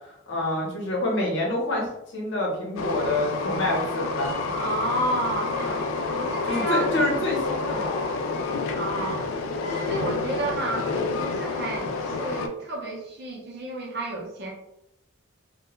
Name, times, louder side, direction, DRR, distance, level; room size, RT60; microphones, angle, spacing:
voice 1, 0.3-4.4 6.5-8.4, left 1 dB, 55° left, -3 dB, 0.8 m, -27 dB
Train, 2.8-12.5, left 3 dB, 80° left, 0.3 m, -29 dB
voice 2, 4.5-6.9 8.7-9.2 9.7-14.5, right 1 dB, 50° right, -2 dB, 0.6 m, -31 dB
2.2 x 2.1 x 2.9 m, 0.80 s
head